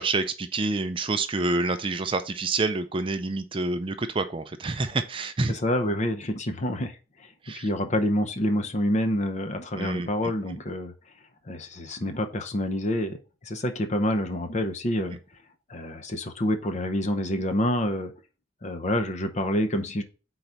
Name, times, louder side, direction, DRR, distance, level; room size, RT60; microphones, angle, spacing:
voice 1, 0.0-5.5 7.4-7.7 9.8-10.1, right 3 dB, 25° right, 9 dB, 0.4 m, -27 dB
voice 2, 5.5-7.0 7.5-10.9 11.5-13.2 13.4-15.2 15.7-18.1 18.6-20.0, left 1 dB, 35° left, 7 dB, 0.7 m, -27 dB
4.7 x 4.0 x 5.6 m, 0.34 s
head